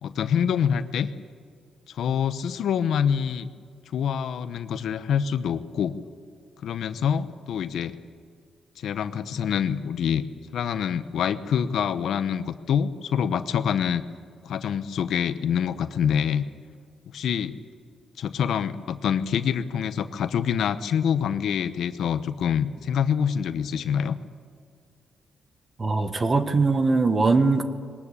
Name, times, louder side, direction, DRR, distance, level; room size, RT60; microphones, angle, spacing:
voice 1, 0.0-1.1 1.9-3.5 3.9-6.0 6.6-7.9 8.8-10.2 10.5-14.1 14.4-16.5 17.1-17.6 18.2-24.2, left 8 dB, 75° left, 12 dB, 0.9 m, -26 dB
voice 2, 25.8-27.6, right 3 dB, 30° right, 9 dB, 1.5 m, -21 dB
21.5 x 19.5 x 8.4 m, 2.1 s
cardioid pair, 125°, 0 cm